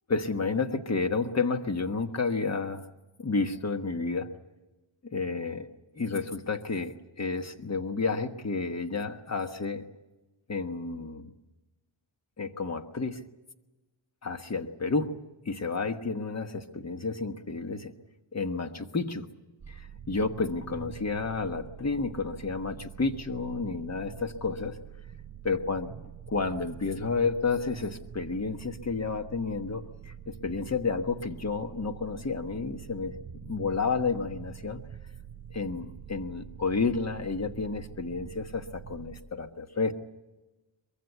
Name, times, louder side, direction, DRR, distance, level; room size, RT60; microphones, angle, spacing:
voice 1, 0.1-2.9 3.2-4.3 5.1-5.7 6.0-9.8 10.5-11.3 12.4-13.2 14.2-15.1 15.4-17.9 18.3-19.3 19.7-24.8 25.4-25.9 26.3-33.1 33.4-34.8 35.5-39.9, left 4 dB, 35° left, 8 dB, 1.3 m, -31 dB
sound 1, 19.6-39.2, right 8 dB, 50° right, 3.7 m, -45 dB
23.5 x 22.0 x 8.2 m, 1.1 s
wide cardioid pair, 140°, 47 cm